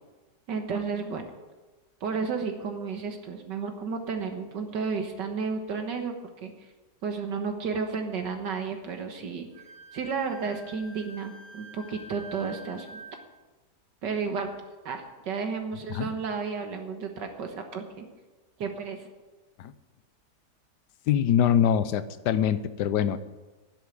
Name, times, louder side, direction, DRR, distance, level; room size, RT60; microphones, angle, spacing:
voice 1, 0.5-1.3 2.0-6.1 6.4-6.5 7.0-9.5 9.9-13.0 14.0-14.5 14.9-18.1 18.6-19.0, right 5 dB, 85° right, 5 dB, 2.0 m, -32 dB
Wind instrument woodwind instrument, 9.5-13.2, right 1 dB, 65° right, 3.8 m, -47 dB
voice 2, 21.1-23.2, left 9 dB, 75° left, 14 dB, 1.3 m, -24 dB
10.5 x 8.4 x 9.7 m, 1.2 s
omnidirectional pair, 1.8 m